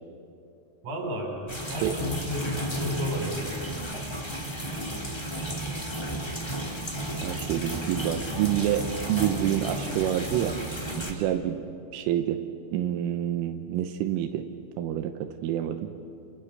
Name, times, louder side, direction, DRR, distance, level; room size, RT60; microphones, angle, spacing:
voice 1, 0.8-3.8, left 1 dB, 40° right, 1 dB, 5.9 m, -33 dB
sound 1, 1.5-11.1, right 1 dB, 35° left, 0.4 m, -33 dB
voice 2, 7.2-10.6 11.0-11.6 11.9-12.4 12.7-14.4 14.8-15.9, right 11 dB, 85° right, 6 dB, 3.6 m, -27 dB
29.0 x 28.5 x 6.6 m, 2.4 s
omnidirectional pair, 5.7 m